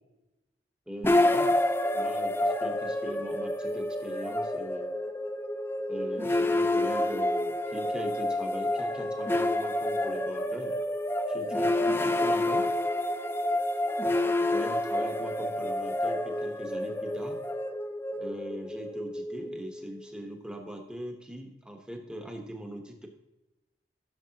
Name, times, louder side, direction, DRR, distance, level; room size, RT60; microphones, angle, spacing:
voice 1, 0.9-1.6 1.9-4.9 5.9-10.7 11.3-12.6 14.5-17.4 18.2-23.1, equal, 5° right, 2 dB, 1.3 m, -41 dB
sound 1, 1.0-20.2, left 1 dB, 15° left, 0.4 m, -29 dB
14.5 x 7.0 x 2.9 m, 1.0 s
head